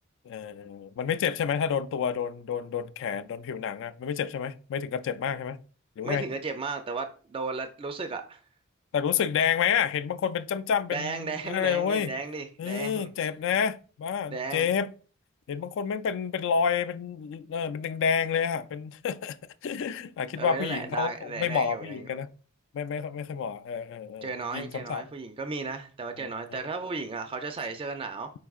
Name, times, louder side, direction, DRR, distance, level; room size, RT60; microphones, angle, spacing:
voice 1, 0.3-5.6 6.0-6.3 8.9-12.1 12.6-14.9 15.5-19.4 19.6-22.3 22.7-25.0 26.2-26.6, left 7 dB, 60° left, 0.3 m, -29 dB
voice 2, 6.0-8.4 10.9-13.1 14.3-14.7 20.4-22.1 24.2-28.3, right 4 dB, 25° right, 0.4 m, -34 dB
4.6 x 4.4 x 2.3 m
head